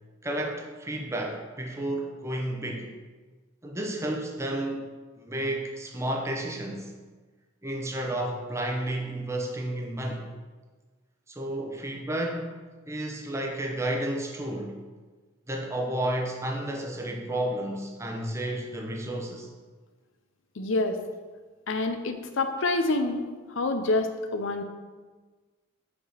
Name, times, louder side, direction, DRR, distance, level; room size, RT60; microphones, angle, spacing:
voice 1, 0.2-2.9 3.6-4.9 5.3-6.9 7.6-10.2 11.3-14.8 15.5-19.5, right 1 dB, 15° right, 1 dB, 0.7 m, -31 dB
voice 2, 20.6-21.0 21.7-23.2 23.5-24.6, left 2 dB, 65° left, 7 dB, 0.6 m, -27 dB
5.2 x 4.9 x 5.0 m, 1.4 s
head